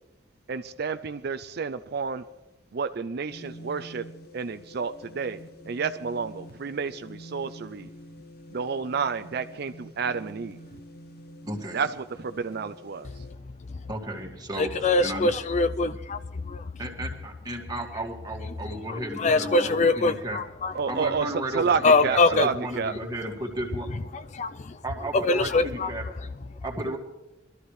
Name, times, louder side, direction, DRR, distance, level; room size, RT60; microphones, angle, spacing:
voice 1, 0.5-2.2 2.7-4.0 4.3-5.4 5.7-7.9 8.5-10.6 11.7-11.9 12.2-13.1 20.7-21.3 21.5-22.9, right 5 dB, 60° right, 0.5 m, -30 dB
sound 1, 3.3-13.4, equal, 60° left, 0.8 m, -47 dB
voice 2, 11.4-11.9 13.9-14.7 15.0-15.3 16.8-20.4 20.9-23.9 24.8-26.0 26.6-27.0, right 1 dB, 20° right, 2.1 m, -34 dB
voice 3, 14.6-16.7 18.7-20.9 21.3-21.5 21.8-22.5 23.9-24.8 25.1-25.9 26.2-26.6, left 3 dB, 40° left, 0.4 m, -24 dB
22.0 x 13.0 x 3.3 m
head